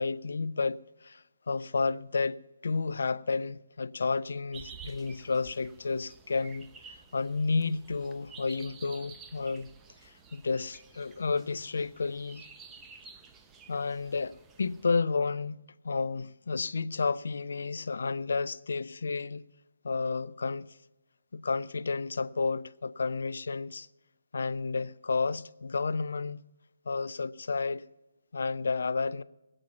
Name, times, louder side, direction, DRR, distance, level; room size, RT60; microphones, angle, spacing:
voice 1, 0.0-2.4 2.6-9.7 10.0-12.5 13.7-19.4 19.8-20.8 21.3-23.9 24.3-26.4 26.9-27.8 28.3-29.2, left 4 dB, 55° left, 0.5 m, -31 dB
sound 1, 4.5-14.9, right 6 dB, 10° right, 0.7 m, -52 dB
20.0 x 8.9 x 5.7 m
figure-of-eight pair, 140°, 0 cm